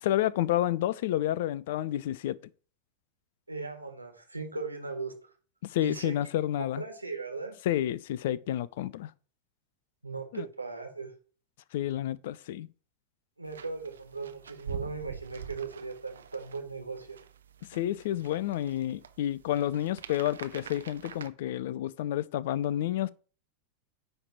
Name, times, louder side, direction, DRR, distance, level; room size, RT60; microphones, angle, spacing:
voice 1, 0.0-2.4 5.6-6.8 7.6-9.1 10.3-10.5 11.7-12.7 17.7-23.1, left 12 dB, 55° left, 0.4 m, -30 dB
voice 2, 3.5-5.1 5.8-7.6 10.0-11.1 13.4-17.2, right 4 dB, 85° right, 1.5 m, -38 dB
sound 1, 13.5-21.3, right 7 dB, 65° right, 0.6 m, -45 dB
9.7 x 3.4 x 5.7 m
figure-of-eight pair, 90°, 0 cm